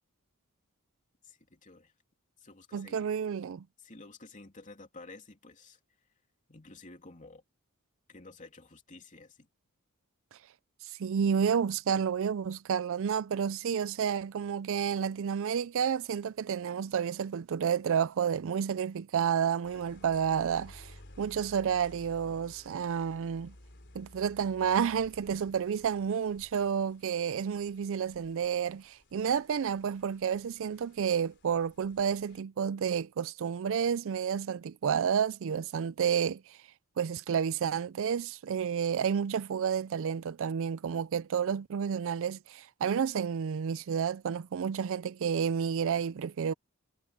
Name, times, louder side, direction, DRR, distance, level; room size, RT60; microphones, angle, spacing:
voice 1, 1.2-1.9 2.4-3.1 3.8-6.1 6.5-7.4 8.1-9.5, left 3 dB, 35° left, 3.0 m, -52 dB
voice 2, 2.7-3.6 11.0-20.9 21.2-23.5 23.9-36.6 37.0-46.5, right 7 dB, 65° right, 0.4 m, -30 dB
sound 1, 19.6-32.4, left 1 dB, 55° left, 3.7 m, -56 dB
head